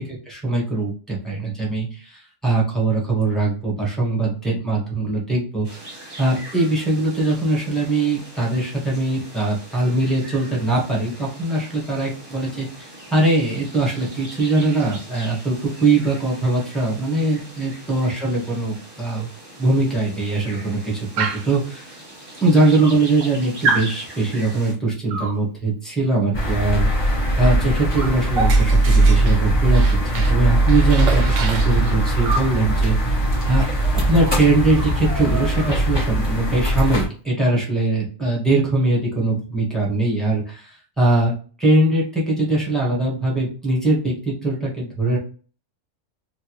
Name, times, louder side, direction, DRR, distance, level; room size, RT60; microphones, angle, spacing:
voice 1, 0.0-5.8 6.2-19.3 19.6-22.0 22.4-26.9 27.4-33.6 33.9-41.3 41.6-45.2, right 2 dB, ahead, -5 dB, 1.3 m, -21 dB
sound 1, 5.6-24.7, right 1 dB, 20° right, 0.8 m, -41 dB
Dog, 21.2-21.6 22.4-22.5 22.8-23.3 23.6-23.9 25.1-25.4 27.2-27.4 27.7-30.4 30.7-32.5 33.8-33.9 34.2-34.4 34.7-36.0, right 4 dB, 80° right, 1.0 m, -28 dB
sound 2, 26.3-37.0, right 1 dB, 20° left, 1.3 m, -19 dB
3.8 x 2.2 x 3.0 m, 0.39 s
omnidirectional pair, 1.3 m